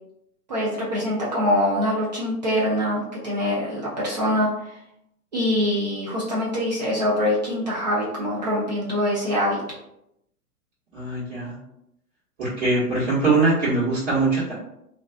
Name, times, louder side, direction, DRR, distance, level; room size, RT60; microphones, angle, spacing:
voice 1, 0.5-4.8 5.3-9.6, left 1 dB, 30° right, -6 dB, 0.4 m, -24 dB
voice 2, 10.9-11.5 12.4-14.5, right 3 dB, 50° right, -10 dB, 1.2 m, -22 dB
2.4 x 2.3 x 2.2 m, 0.80 s
figure-of-eight pair, 110°, 47 cm